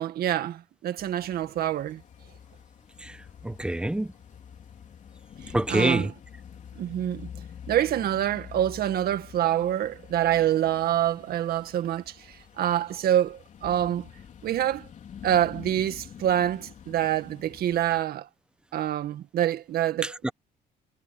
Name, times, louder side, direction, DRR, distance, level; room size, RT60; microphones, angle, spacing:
voice 1, 0.0-2.0 5.4-6.1 6.8-7.3 7.7-14.1 14.4-14.9 15.2-18.3 18.7-20.3, right 11 dB, 65° right, 2.0 m, -26 dB
sound 1, 1.0-18.0, left 8 dB, 45° left, 3.4 m, -47 dB
voice 2, 3.4-4.1 5.5-6.1 20.2-20.3, right 1 dB, 5° right, 0.9 m, -25 dB
cardioid pair, 110°, 17 cm